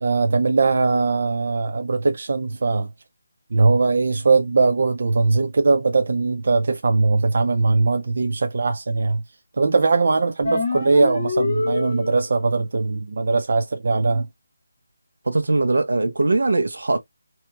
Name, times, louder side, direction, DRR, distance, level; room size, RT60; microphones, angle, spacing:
voice 1, 0.0-2.9 3.5-9.2 9.6-14.3, right 3 dB, 50° right, 0.5 m, -20 dB
sound 1, 10.4-12.4, left 3 dB, 25° left, 1.6 m, -25 dB
voice 2, 15.2-17.0, right 2 dB, 85° right, 1.0 m, -20 dB
4.3 x 2.8 x 2.3 m
figure-of-eight pair, 175°, 0 cm